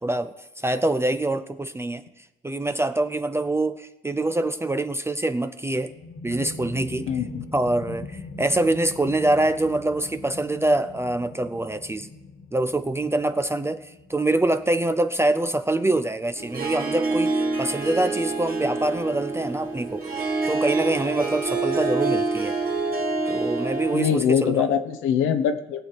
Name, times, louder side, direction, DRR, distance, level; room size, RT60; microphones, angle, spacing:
voice 1, 0.0-2.0 2.4-5.9 6.2-7.1 7.5-12.1 12.5-20.0 20.5-22.6 23.3-24.7, right 2 dB, 15° right, 9 dB, 0.5 m, -25 dB
sound 1, 5.7-17.0, left 3 dB, 60° left, 1.7 m, -42 dB
voice 2, 7.1-7.5 23.9-25.8, left 8 dB, 90° left, 8 dB, 1.0 m, -23 dB
Harp, 16.3-24.2, right 3 dB, 45° right, 2.4 m, -27 dB
18.5 x 7.2 x 4.6 m, 0.94 s
cardioid pair, 90°, 20 cm